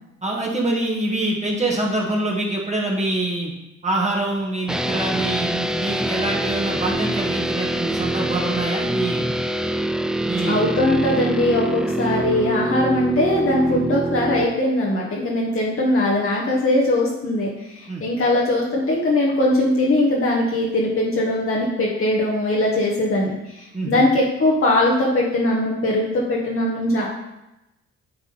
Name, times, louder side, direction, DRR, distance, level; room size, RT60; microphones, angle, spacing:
voice 1, 0.2-3.5 3.8-9.3 10.2-10.6 10.8-11.2 13.7-13.8 17.9-18.0 23.7-24.0, right 2 dB, 20° right, -3 dB, 1.6 m, -25 dB
sound 1, 4.7-14.4, right 1 dB, ahead, 0.3 m, -25 dB
voice 2, 10.5-27.1, left 1 dB, 45° left, -4 dB, 1.5 m, -20 dB
9.1 x 3.6 x 5.5 m, 0.94 s
cardioid pair, 90°, 30 cm